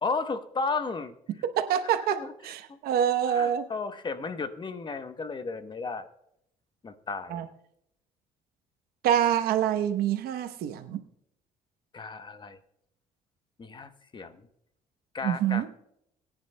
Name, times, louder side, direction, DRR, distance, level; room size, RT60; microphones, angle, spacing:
voice 1, 0.0-1.1 2.1-2.3 3.3-6.1 6.8-7.4 11.9-12.6 13.6-14.5 15.1-15.8, left 4 dB, 30° left, 10 dB, 0.9 m, -34 dB
voice 2, 1.4-3.7 7.3-7.5 9.0-11.0 15.2-15.7, right 9 dB, 80° right, 9 dB, 0.9 m, -26 dB
21.5 x 9.9 x 2.2 m, 0.75 s
cardioid pair, 100°, 16 cm